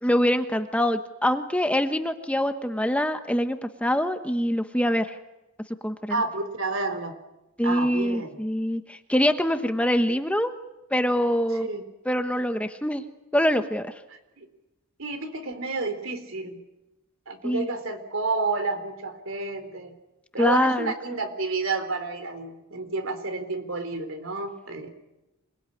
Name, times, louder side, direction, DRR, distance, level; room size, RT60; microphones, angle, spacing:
voice 1, 0.0-5.2 5.8-6.2 7.6-10.5 10.9-11.7 12.0-13.0 13.3-13.9 17.4-17.7 20.4-20.9, equal, 5° left, 8 dB, 1.1 m, -24 dB
voice 2, 6.1-7.1 7.6-8.4 11.6-11.8 14.4-14.5 15.0-16.6 17.3-19.9 20.3-24.9, right 3 dB, 65° right, 9 dB, 3.8 m, -30 dB
27.5 x 21.0 x 9.9 m, 0.99 s
head